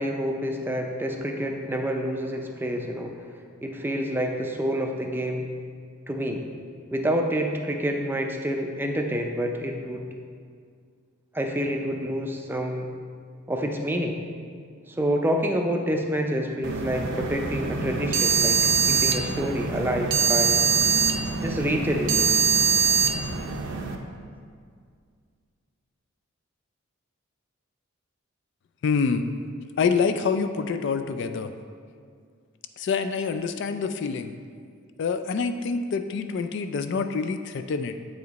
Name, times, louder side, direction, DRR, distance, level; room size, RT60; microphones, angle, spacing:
voice 1, 0.0-3.2 3.6-5.5 6.1-6.5 6.9-10.0 11.3-12.9 13.5-14.2 14.9-20.6 21.4-22.3, equal, 10° right, 2 dB, 0.4 m, -28 dB
sound 1, 16.6-24.0, right 6 dB, 60° right, 0.6 m, -23 dB
voice 2, 28.8-29.2 29.8-31.5 32.8-34.3 35.0-37.9, left 5 dB, 55° left, 9 dB, 0.3 m, -26 dB
8.1 x 4.9 x 4.0 m, 2.1 s
head